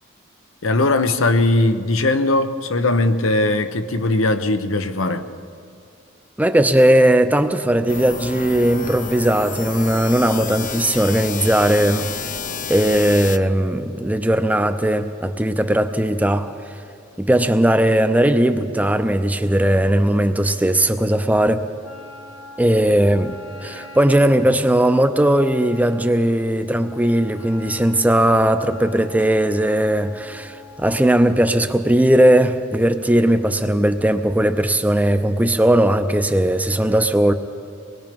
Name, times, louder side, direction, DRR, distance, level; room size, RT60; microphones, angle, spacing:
voice 1, 0.6-5.3, left 2 dB, 90° left, 9 dB, 1.0 m, -19 dB
voice 2, 6.4-12.1 12.7-16.5 17.2-21.6 22.6-23.3 23.6-37.3, right 1 dB, 10° right, 9 dB, 0.6 m, -18 dB
sound 1, 7.9-13.4, left 6 dB, 40° left, 0.6 m, -30 dB
Wind instrument woodwind instrument, 21.8-31.4, left 3 dB, 70° left, 2.3 m, -43 dB
24.0 x 20.5 x 5.3 m, 2.3 s
head